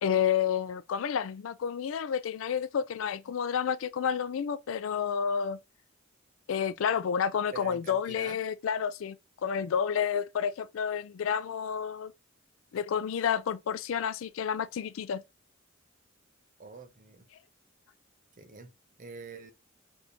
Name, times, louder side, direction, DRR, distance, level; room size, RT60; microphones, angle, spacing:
voice 1, 0.0-5.6 6.5-9.2 9.4-12.1 12.7-15.2, left 7 dB, 75° left, 0.4 m, -30 dB
voice 2, 7.5-8.4 16.6-17.3 18.4-18.7 19.0-19.5, right 4 dB, 40° right, 0.7 m, -45 dB
3.4 x 2.6 x 2.8 m
head